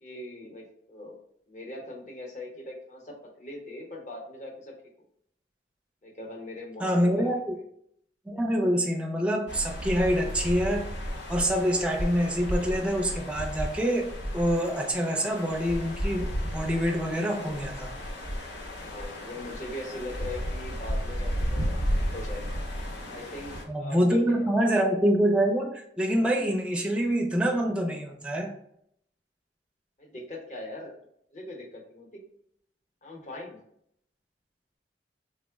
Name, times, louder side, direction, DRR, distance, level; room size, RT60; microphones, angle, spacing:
voice 1, 0.0-1.2 1.5-4.7 6.0-7.3 18.8-21.7 22.0-22.6 23.1-24.5 30.0-31.0 31.3-32.2 33.0-33.6, left 1 dB, 40° left, -1 dB, 0.8 m, -41 dB
voice 2, 6.8-7.6 8.3-10.8 11.3-14.1 14.3-17.9 23.7-28.5, equal, 5° right, 1 dB, 0.4 m, -26 dB
sound 1, 9.5-23.6, equal, 85° left, 0.9 m, -33 dB
3.6 x 2.1 x 3.4 m, 0.71 s
head